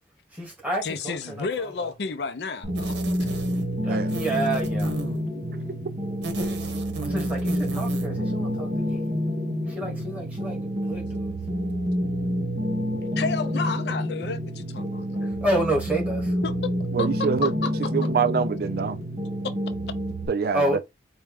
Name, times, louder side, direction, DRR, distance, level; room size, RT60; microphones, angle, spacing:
voice 1, 0.3-1.9 3.8-4.9 7.0-9.0 9.6-11.3 15.2-16.3 20.5-20.8, right 1 dB, 10° right, 1.6 m, -29 dB
voice 2, 0.8-2.9 3.2-3.3 13.2-15.4 16.4-16.5 17.0-17.9, left 4 dB, 70° left, 0.5 m, -31 dB
sound 1, 2.6-20.3, equal, 40° right, 1.0 m, -28 dB
sound 2, 2.7-3.7 4.1-5.2 6.1-8.1, right 3 dB, 90° right, 0.9 m, -35 dB
voice 3, 16.9-17.5 17.9-19.0 20.3-20.6, right 6 dB, 55° right, 0.3 m, -25 dB
4.3 x 2.3 x 3.5 m
head